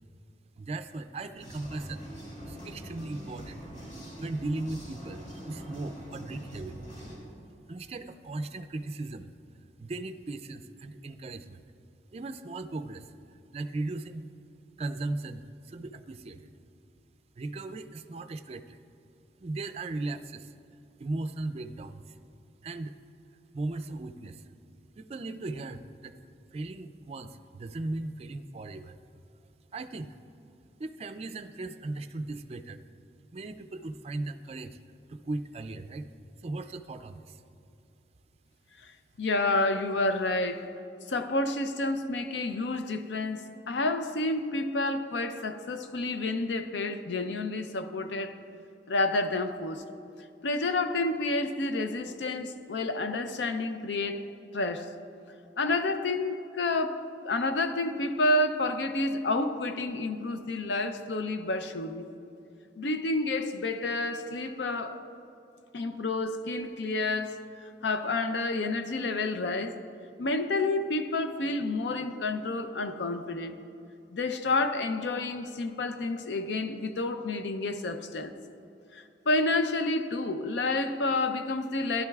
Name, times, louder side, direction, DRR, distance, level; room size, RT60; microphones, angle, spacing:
voice 1, 0.6-2.1 2.4-3.6 4.2-6.8 7.7-9.3 9.8-11.6 12.1-13.1 13.5-14.3 14.8-16.5 17.4-18.8 19.4-20.5 21.0-22.2 22.6-23.0 23.5-24.5 25.0-26.1 26.5-29.0 29.7-30.1 30.8-32.8 33.3-34.8 35.1-36.1 36.4-37.4, right 2 dB, 35° right, 0.4 m, -37 dB
sound 1, 1.4-7.2, equal, 45° left, 2.4 m, -44 dB
voice 2, 39.2-40.7 41.1-48.4 48.9-49.8 50.4-54.2 54.5-54.9 55.6-62.1 62.8-65.0 65.7-67.4 67.8-69.8 70.2-73.6 74.1-78.3 78.9-82.0, left 2 dB, 80° left, 0.6 m, -29 dB
15.5 x 11.0 x 2.3 m
head